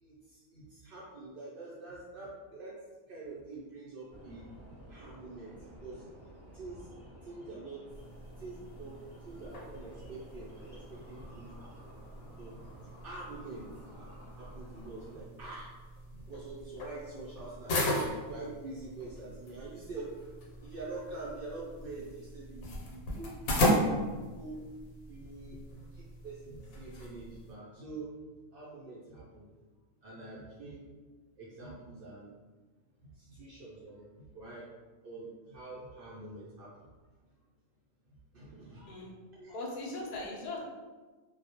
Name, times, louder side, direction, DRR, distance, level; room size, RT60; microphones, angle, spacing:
voice 1, 0.0-2.7 3.1-4.5 4.9-6.0 6.5-6.8 7.2-7.8 8.4-9.0 9.2-11.9 12.4-12.6 13.0-13.6 13.9-14.1 14.4-15.7 16.1-20.1 20.6-23.4 23.8-24.6 25.1-25.6 25.9-28.1 28.5-29.5 30.0-30.8 31.4-32.3 33.2-34.0 34.3-34.7 35.0-36.7 38.3-38.9 39.3-39.6, right 2 dB, 75° right, -7 dB, 0.5 m, -45 dB
sound 1, 4.1-15.2, equal, 25° right, 0.5 m, -53 dB
sound 2, 7.9-27.5, left 1 dB, 85° left, 1.0 m, -37 dB
voice 2, 39.5-40.6, left 2 dB, 65° left, -4 dB, 0.4 m, -39 dB
2.3 x 2.0 x 2.7 m, 1.3 s
omnidirectional pair, 1.4 m